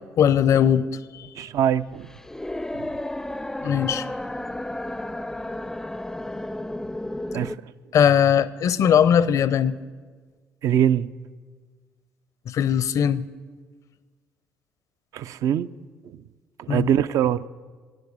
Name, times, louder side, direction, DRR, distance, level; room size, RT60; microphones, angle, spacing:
voice 1, 0.2-0.9 3.6-4.0 7.9-9.7 12.5-13.3 16.7-16.9, left 8 dB, 60° left, 0.5 m, -19 dB
voice 2, 1.4-2.1 2.7-2.9 7.3-7.6 10.6-11.1 15.1-15.7 16.0-16.2 16.6-17.5, right 10 dB, 65° right, 0.4 m, -23 dB
sound 1, 1.6-7.6, left 1 dB, 10° left, 0.4 m, -32 dB
10.5 x 8.0 x 8.4 m
supercardioid pair, 65°, 6 cm